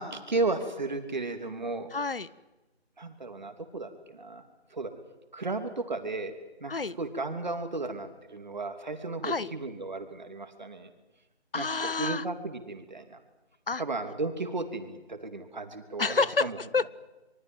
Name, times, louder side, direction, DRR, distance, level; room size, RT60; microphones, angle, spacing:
voice 1, 0.0-1.9 3.0-4.4 4.7-4.9 5.3-6.3 6.6-10.9 11.5-13.2 13.8-16.6, right 3 dB, 45° right, 7 dB, 3.0 m, -34 dB
voice 2, 1.9-2.3 6.7-7.0 9.2-9.5 11.5-12.2 13.7-13.8 16.0-16.9, left 4 dB, 55° left, 20 dB, 1.0 m, -28 dB
26.0 x 23.5 x 7.9 m, 1.1 s
figure-of-eight pair, 165°, 33 cm